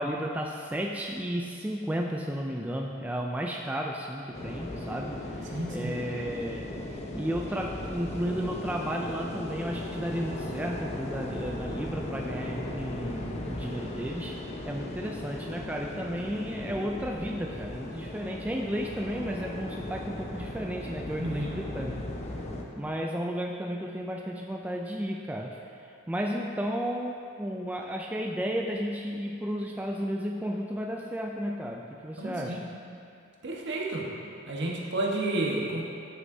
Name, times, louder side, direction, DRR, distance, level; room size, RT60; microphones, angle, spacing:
voice 1, 0.0-14.4 14.7-22.0 22.8-32.7, equal, 5° right, 0 dB, 0.3 m, -33 dB
sound 1, 4.3-22.6, left 1 dB, 30° left, 0.8 m, -37 dB
voice 2, 5.5-6.0 21.2-21.6 32.2-32.6 33.4-34.1 34.5-35.8, right 2 dB, 55° right, -3 dB, 1.3 m, -31 dB
14.0 x 6.4 x 2.7 m, 2.5 s
head